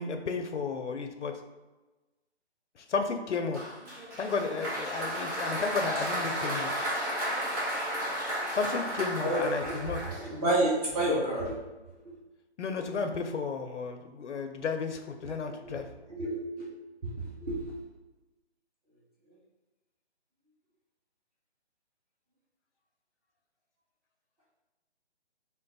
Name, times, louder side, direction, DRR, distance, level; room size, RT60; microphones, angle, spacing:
voice 1, 0.0-1.3 2.9-3.6 4.2-6.7 8.6-10.0 12.6-15.9, left 5 dB, 85° left, 5 dB, 0.5 m, -33 dB
Applause, 3.5-10.6, equal, 20° right, 1.0 m, -33 dB
voice 2, 9.2-11.5 15.2-15.3 15.6-15.7 16.1-16.7 17.0-17.7, right 1 dB, 35° right, -7 dB, 1.3 m, -30 dB
3.8 x 2.0 x 3.9 m, 1.1 s
figure-of-eight pair, 155°, 34 cm